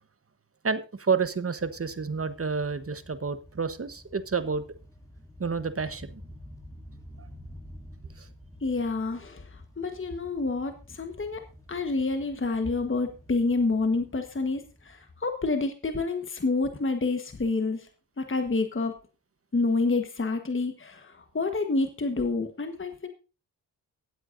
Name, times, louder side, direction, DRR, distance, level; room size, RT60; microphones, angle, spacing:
voice 1, 0.6-4.6 5.4-6.2 7.2-7.3 8.2-8.3, right 5 dB, 35° right, 12 dB, 1.2 m, -29 dB
sound 1, 1.6-15.4, equal, 10° left, 2.7 m, -50 dB
voice 2, 8.6-17.9 18.2-18.9 19.5-23.1, left 3 dB, 30° left, 6 dB, 1.4 m, -28 dB
23.0 x 8.0 x 2.7 m, 0.32 s
cardioid pair, 50°, 42 cm